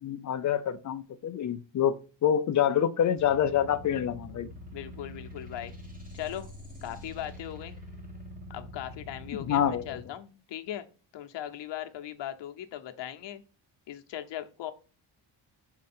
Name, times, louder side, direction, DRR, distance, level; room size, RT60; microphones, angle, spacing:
voice 1, 0.0-4.5 9.4-10.0, left 9 dB, 40° left, 0.5 m, -27 dB
sound 1, 3.2-10.0, left 1 dB, 20° right, 1.8 m, -45 dB
voice 2, 4.7-5.7 6.1-6.5 6.8-7.8 8.5-10.9 11.1-13.4 13.9-14.7, left 11 dB, 65° left, 0.9 m, -39 dB
6.4 x 4.8 x 4.2 m
cardioid pair, 175°, 47 cm